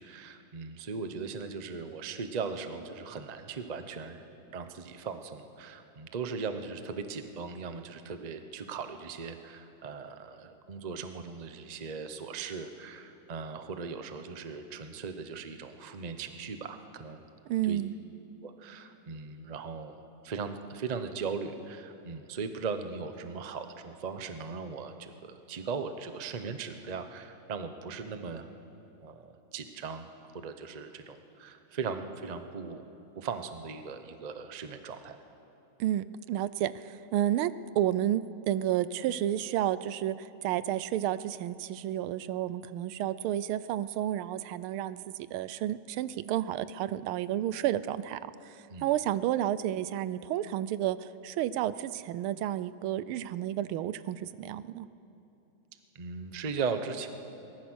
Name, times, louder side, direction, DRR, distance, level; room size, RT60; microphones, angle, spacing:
voice 1, 0.0-4.2 4.5-17.2 17.6-17.8 18.4-20.0 20.2-28.5 29.0-30.1 30.3-32.8 33.2-35.2 48.7-48.9 55.9-57.1, right 5 dB, 40° right, 8 dB, 0.5 m, -38 dB
voice 2, 17.5-17.9 35.8-45.0 45.3-54.9, right 12 dB, 90° right, 16 dB, 1.5 m, -31 dB
22.5 x 19.0 x 6.3 m, 2.9 s
omnidirectional pair, 2.3 m